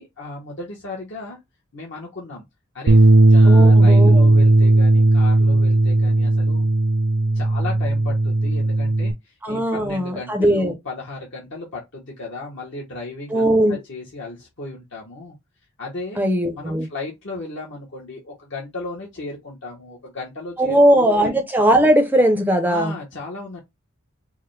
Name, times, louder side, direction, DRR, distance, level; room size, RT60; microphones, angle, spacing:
voice 1, 0.0-1.4 1.7-2.4 2.7-6.7 7.3-15.4 15.8-16.2 16.5-21.4 22.6-23.6, left 3 dB, 55° left, 0.9 m, -35 dB
Bass guitar, 2.9-9.1, right 2 dB, 60° right, 0.5 m, -15 dB
voice 2, 3.4-4.2 9.4-10.7 13.3-13.8 16.2-16.9 20.6-22.9, right 1 dB, 10° right, 0.5 m, -18 dB
4.8 x 2.1 x 3.1 m
head